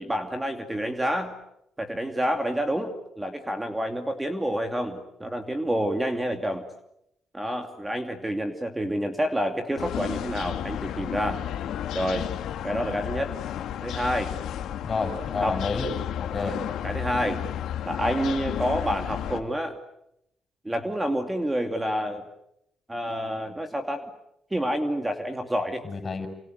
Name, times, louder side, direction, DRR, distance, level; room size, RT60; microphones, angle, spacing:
voice 1, 0.0-1.4 1.8-6.6 7.3-11.4 11.9-12.3 12.6-13.3 13.8-14.3 15.4-15.6 16.4-16.5 16.8-17.4 17.8-19.8 20.6-22.2 22.9-24.1 24.5-25.8, equal, 10° right, 5 dB, 2.6 m, -28 dB
sound 1, 9.8-19.4, left 10 dB, 80° left, 2.0 m, -32 dB
voice 2, 14.8-16.6 25.8-26.3, left 4 dB, 35° left, 8 dB, 6.6 m, -30 dB
28.5 x 25.0 x 8.1 m, 0.81 s
cardioid pair, 90°, 0 cm